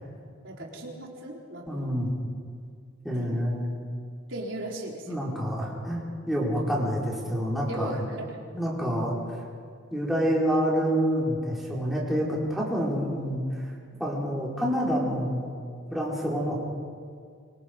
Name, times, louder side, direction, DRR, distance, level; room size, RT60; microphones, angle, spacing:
voice 1, 0.4-2.1 3.2-3.5 4.3-5.2 7.7-8.4, right 1 dB, 70° right, -2 dB, 4.2 m, -38 dB
voice 2, 1.7-2.1 3.0-3.8 5.1-7.9 8.5-9.1 9.9-13.4 14.0-15.5 15.9-16.6, equal, ahead, -5 dB, 4.6 m, -27 dB
25.5 x 25.0 x 5.3 m, 2.1 s
head